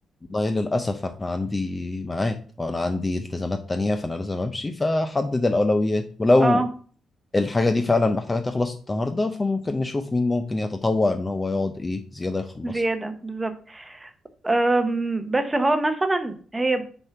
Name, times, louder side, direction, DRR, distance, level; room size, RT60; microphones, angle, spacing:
voice 1, 0.3-6.6 7.3-12.8, left 2 dB, 15° left, 7 dB, 0.4 m, -24 dB
voice 2, 12.6-14.1 14.4-16.8, right 2 dB, 15° right, 7 dB, 0.8 m, -24 dB
6.6 x 4.4 x 4.7 m, 0.44 s
cardioid pair, 150°, 0 cm